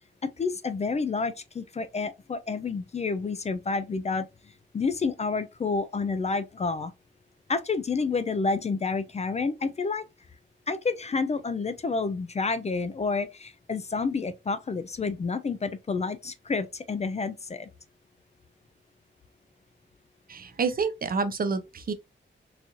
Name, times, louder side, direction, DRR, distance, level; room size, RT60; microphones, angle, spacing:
voice 1, 0.2-4.3 4.7-6.9 7.5-10.0 10.7-17.7, left 4 dB, 35° left, 0.4 m, -29 dB
voice 2, 20.3-21.9, right 4 dB, 50° right, 0.6 m, -28 dB
3.9 x 2.5 x 2.9 m
wide cardioid pair, 130°, 20 cm